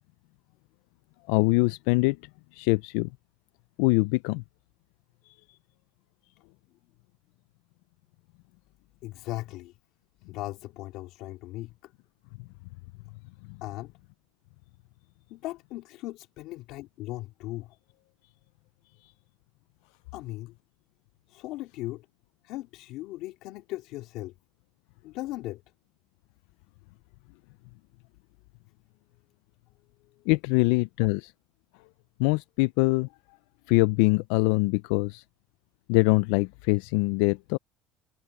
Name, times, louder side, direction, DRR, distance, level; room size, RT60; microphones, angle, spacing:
voice 1, 1.3-2.2 2.5-3.1 3.8-4.4 30.3-31.3 32.2-33.1 33.7-35.2 35.9-37.6, left 25 dB, 80° left, 0.3 m, -23 dB
voice 2, 9.0-9.7 10.3-11.9 13.6-13.9 15.3-18.1 20.1-20.6 21.3-22.0 22.4-24.3 25.0-25.6, left 17 dB, 65° left, 3.6 m, -38 dB
cardioid pair, 145°, 0 cm